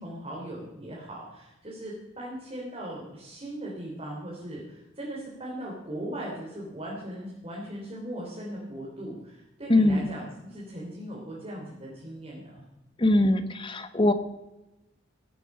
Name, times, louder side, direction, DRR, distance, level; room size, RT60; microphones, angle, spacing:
voice 1, 0.0-12.6, right 1 dB, 30° right, -5 dB, 3.6 m, -38 dB
voice 2, 9.7-10.1 13.0-14.1, left 1 dB, 30° left, 10 dB, 1.1 m, -22 dB
18.5 x 9.2 x 5.7 m, 0.96 s
head